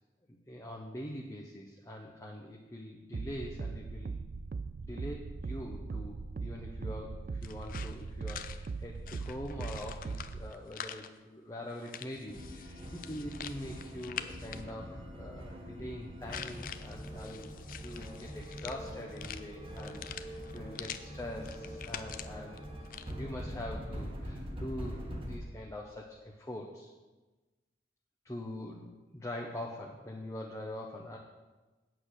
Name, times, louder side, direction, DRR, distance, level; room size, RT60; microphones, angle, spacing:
voice 1, 0.3-4.2 4.8-17.5 17.8-22.6 23.1-26.9 28.2-31.2, left 1 dB, 15° left, -1 dB, 0.8 m, -43 dB
sound 1, 3.1-10.5, right 4 dB, 50° right, 0.3 m, -40 dB
sound 2, 7.4-11.1 11.7-14.7 16.3-21.0 21.3-23.1, left 9 dB, 50° left, 0.5 m, -45 dB
sound 3, 12.3-25.4, equal, 30° right, 1.4 m, -43 dB
8.5 x 7.9 x 6.3 m, 1.2 s
head